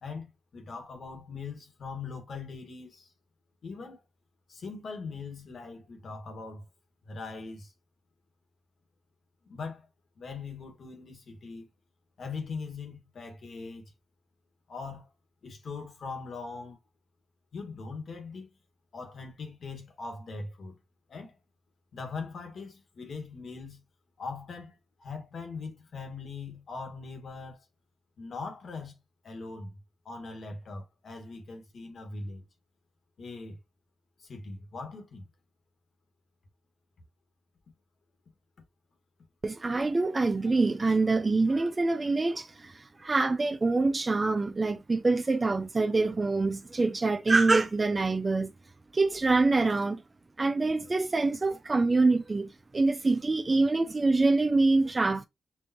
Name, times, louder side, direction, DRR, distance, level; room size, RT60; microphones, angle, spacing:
voice 1, 0.0-3.1 3.6-4.0 4.5-6.7 7.0-7.7 9.4-9.9 10.2-11.7 12.2-13.9 14.7-15.1 15.4-16.8 17.5-18.5 18.9-20.8 21.1-21.3 21.9-23.8 24.2-27.6 28.2-29.0 29.2-29.8 30.0-32.4 33.2-33.6 34.2-35.2, left 4 dB, 60° left, 1.6 m, -41 dB
voice 2, 39.4-48.5 48.9-50.0 50.4-55.3, right 3 dB, 30° right, 0.4 m, -25 dB
4.6 x 2.6 x 2.9 m
cardioid pair, 80°, 0 cm